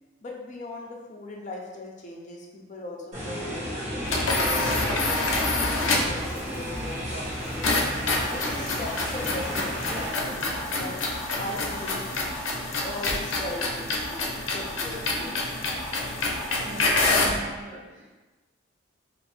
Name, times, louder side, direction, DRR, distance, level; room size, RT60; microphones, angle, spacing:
voice 1, 0.2-5.3 5.7-7.9 8.3-11.0 11.3-12.1 12.8-15.4, left 2 dB, 40° left, -1 dB, 0.5 m, -39 dB
sound 1, 3.1-10.1, equal, 40° right, 1.1 m, -32 dB
sound 2, 4.0-6.2 7.6-17.4, left 2 dB, 90° left, 0.6 m, -27 dB
sound 3, 5.1-12.1, equal, 15° right, 1.1 m, -44 dB
voice 2, 16.5-18.2, right 2 dB, 65° right, -5 dB, 0.6 m, -39 dB
2.5 x 2.5 x 3.4 m, 1.2 s
head